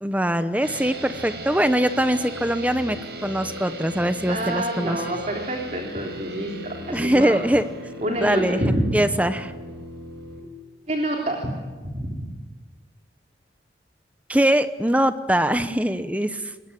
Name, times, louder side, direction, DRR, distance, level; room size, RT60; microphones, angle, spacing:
voice 1, 0.0-5.0 6.9-7.7 8.2-9.5 14.3-16.4, right 1 dB, 10° right, 11 dB, 0.9 m, -22 dB
sound 1, 0.6-10.4, right 1 dB, 65° right, 5.5 m, -37 dB
voice 2, 4.3-7.4 8.0-8.9 10.9-11.5 11.8-12.2, right 1 dB, 40° right, 1 dB, 3.6 m, -27 dB
27.0 x 21.5 x 9.9 m, 1.3 s
head